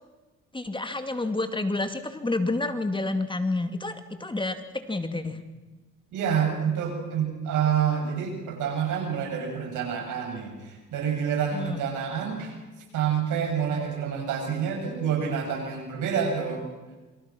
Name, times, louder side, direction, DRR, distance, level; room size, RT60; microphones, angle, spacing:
voice 1, 0.5-5.4 11.5-11.8, left 2 dB, 15° left, 8 dB, 2.5 m, -29 dB
voice 2, 6.1-12.6 12.9-16.6, right 7 dB, 85° right, 2 dB, 7.9 m, -28 dB
28.0 x 25.0 x 6.2 m, 1.2 s
cardioid pair, 90°, 30 cm